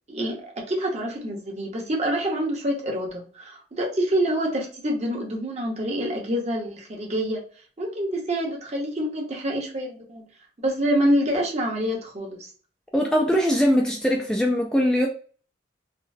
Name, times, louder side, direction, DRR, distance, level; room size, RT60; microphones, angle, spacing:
voice 1, 0.1-7.4 7.8-10.3 10.6-12.5, equal, 40° right, 0 dB, 0.9 m, -26 dB
voice 2, 12.9-15.1, equal, 5° left, 0 dB, 0.3 m, -21 dB
3.6 x 2.1 x 2.6 m, 0.40 s
head